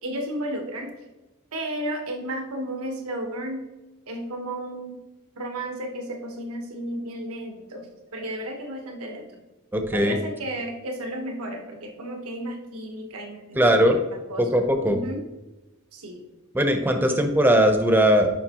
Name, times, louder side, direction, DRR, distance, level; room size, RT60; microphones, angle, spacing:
voice 1, 0.0-1.0 1.5-3.7 4.1-5.0 5.4-9.4 9.9-14.5 14.9-15.2 15.9-16.3 17.1-17.2, right 1 dB, 90° right, 3 dB, 1.2 m, -33 dB
voice 2, 9.7-10.2 13.5-14.0 14.4-15.0 16.5-18.3, equal, 10° right, 5 dB, 0.7 m, -19 dB
11.0 x 5.4 x 2.9 m, 1.0 s
head